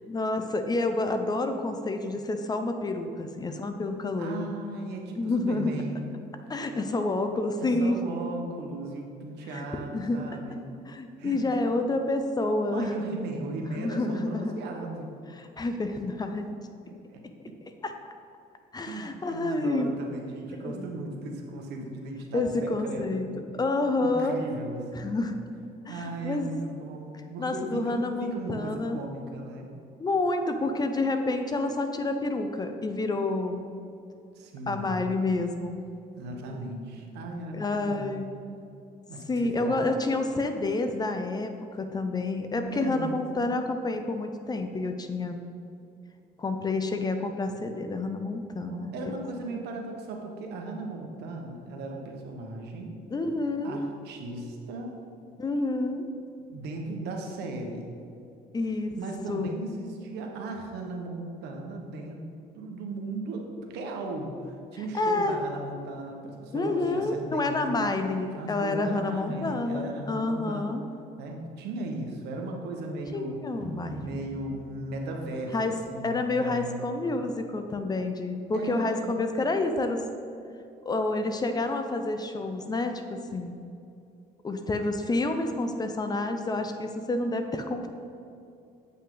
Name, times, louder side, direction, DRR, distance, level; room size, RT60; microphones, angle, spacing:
voice 1, 0.1-4.5 5.2-5.8 6.5-8.0 9.5-9.6 9.9-10.2 10.9-12.9 13.8-14.6 15.4-16.5 17.8-17.9 18.7-19.9 20.5-20.8 22.3-23.3 23.6-24.4 25.0-25.4 25.9-26.5 27.4-29.0 30.0-33.6 34.7-35.7 37.5-38.4 39.3-45.4 46.4-49.2 49.5-49.6 53.1-53.8 55.4-56.0 58.5-59.0 59.3-59.5 64.9-65.3 66.5-70.8 73.1-74.0 75.5-75.8 76.0-80.0 80.9-83.5 84.4-87.9, left 2 dB, 25° left, 7 dB, 0.6 m, -29 dB
voice 2, 4.2-6.0 7.6-10.6 11.2-11.5 12.6-15.1 16.8-17.2 18.8-23.3 24.0-25.2 25.9-29.7 34.3-35.1 36.2-38.2 39.1-39.9 42.7-43.6 48.7-53.0 53.6-55.0 56.5-57.8 59.0-62.2 62.6-67.9 68.4-70.7 71.2-73.4 73.9-76.8 78.5-79.2, right 2 dB, 80° right, 1 dB, 1.2 m, -37 dB
sound 1, 73.6-76.8, right 1 dB, 5° right, 1.4 m, -44 dB
8.1 x 5.6 x 3.8 m, 2.6 s
cardioid pair, 110°, 17 cm